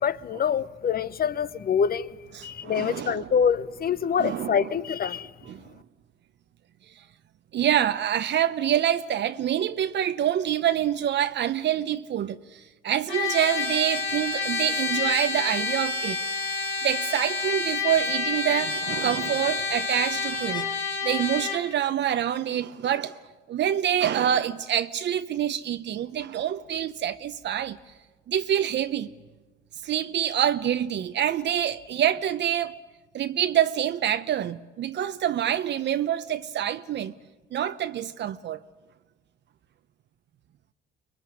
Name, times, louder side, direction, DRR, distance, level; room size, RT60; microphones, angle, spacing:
voice 1, 0.0-2.1 2.4-5.3, left 7 dB, 45° left, 1.0 m, -25 dB
voice 2, 2.3-3.3 4.2-4.7 5.5-5.6 7.5-16.2 16.8-20.7 21.0-23.2 23.5-27.8 28.3-29.1 29.8-32.8 33.1-37.1 37.5-38.6, right 10 dB, 60° right, 0.9 m, -26 dB
Trumpet, 13.1-21.6, left 4 dB, 80° left, 3.3 m, -29 dB
24.5 x 21.5 x 9.9 m
supercardioid pair, 75°, 21 cm